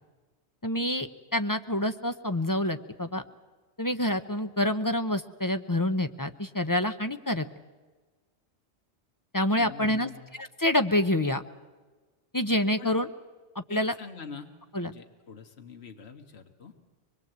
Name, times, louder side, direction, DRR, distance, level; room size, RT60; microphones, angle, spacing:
voice 1, 0.6-3.2 3.8-7.5 9.3-10.1 10.4-11.4 12.3-13.1 13.7-13.9 14.7-14.9, left 1 dB, 20° left, 8 dB, 0.7 m, -27 dB
voice 2, 9.6-10.3 12.8-13.0 13.7-14.5 14.8-16.7, left 6 dB, 70° left, 4 dB, 1.7 m, -44 dB
24.0 x 22.0 x 8.0 m, 1.3 s
omnidirectional pair, 1.1 m